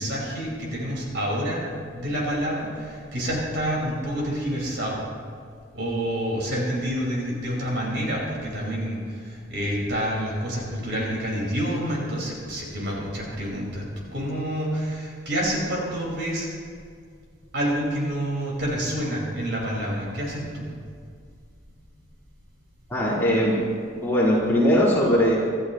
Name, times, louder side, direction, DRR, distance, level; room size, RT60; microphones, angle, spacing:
voice 1, 0.0-5.1 5.7-13.8 14.1-16.5 17.5-20.7, equal, 60° right, -4 dB, 5.2 m, -28 dB
voice 2, 22.9-23.6 24.0-25.4, equal, 10° left, -9 dB, 4.0 m, -20 dB
27.0 x 13.5 x 3.1 m, 2.1 s
head